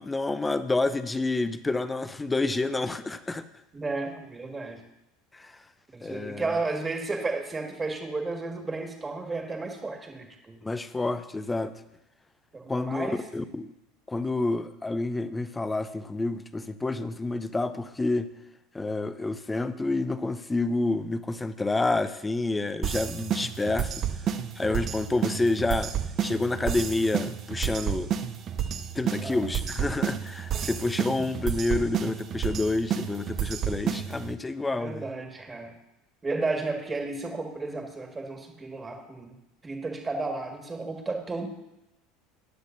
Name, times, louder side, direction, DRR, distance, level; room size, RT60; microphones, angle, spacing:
voice 1, 0.0-3.4 5.3-5.6 6.0-6.6 10.6-11.7 12.7-13.7 14.1-18.3 18.7-23.9 24.6-25.9 26.2-28.1 28.9-35.1, left 2 dB, 15° left, 12 dB, 0.7 m, -28 dB
voice 2, 3.7-4.8 5.9-10.6 12.5-13.2 29.2-29.5 30.5-30.7 31.1-31.3 34.8-35.8 36.2-39.3 39.6-41.5, right 3 dB, 20° right, 3 dB, 1.9 m, -33 dB
sound 1, 22.8-34.3, right 9 dB, 45° right, 0.7 m, -31 dB
14.5 x 9.7 x 2.7 m, 0.91 s
hypercardioid pair, 80°, 0 cm